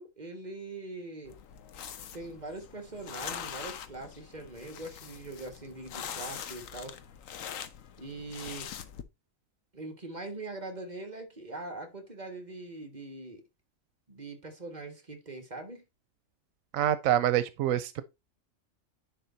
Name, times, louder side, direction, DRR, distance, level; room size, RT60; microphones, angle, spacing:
voice 1, 0.0-1.4 2.1-7.0 8.0-8.7 9.7-13.4 14.1-15.8, right 2 dB, 35° right, 1.5 m, -42 dB
sound 1, 1.3-9.0, left 8 dB, 75° left, 1.2 m, -43 dB
voice 2, 16.7-18.0, right 11 dB, 90° right, 1.0 m, -26 dB
10.0 x 3.6 x 4.0 m
omnidirectional pair, 1.4 m